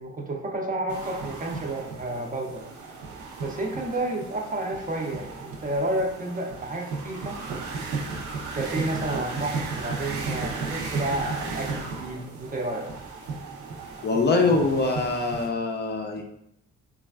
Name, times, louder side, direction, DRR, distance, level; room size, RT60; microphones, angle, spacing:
voice 1, 0.0-2.6 3.4-7.4 8.5-12.9 14.5-14.6, right 2 dB, 30° right, 1 dB, 0.5 m, -31 dB
sound 1, 0.9-15.5, right 4 dB, 85° right, 0.6 m, -35 dB
voice 2, 14.0-16.2, left 3 dB, 35° left, 2 dB, 0.4 m, -23 dB
3.2 x 2.3 x 2.3 m, 0.76 s
cardioid pair, 90°, 30 cm